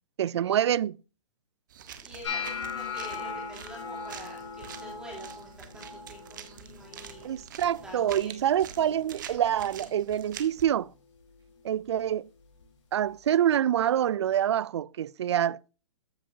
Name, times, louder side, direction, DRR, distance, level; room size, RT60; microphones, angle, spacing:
voice 1, 0.2-1.0 7.2-10.9 11.6-12.3 12.9-15.7, right 10 dB, 60° right, 0.4 m, -26 dB
sound 1, 1.7-10.6, right 8 dB, 40° right, 1.2 m, -46 dB
voice 2, 2.0-8.3, right 1 dB, 5° right, 3.2 m, -47 dB
sound 2, 2.2-8.3 8.6-9.1 9.5-10.0 10.6-10.9 12.6-12.7, left 5 dB, 65° left, 5.6 m, -39 dB
13.5 x 6.4 x 2.7 m
hypercardioid pair, 180°, 16 cm